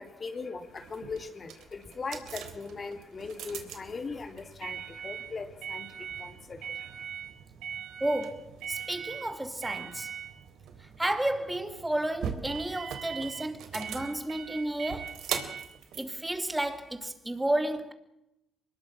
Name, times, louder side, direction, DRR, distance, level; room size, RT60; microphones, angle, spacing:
voice 1, 0.0-7.0, left 4 dB, 40° left, 3.3 m, -40 dB
sound 1, 0.7-17.1, right 8 dB, 80° right, 3.4 m, -40 dB
voice 2, 8.0-10.1 10.8-15.2 16.0-17.9, right 1 dB, 10° right, 2.9 m, -32 dB
24.5 x 21.0 x 6.2 m
cardioid pair, 90°, 0 cm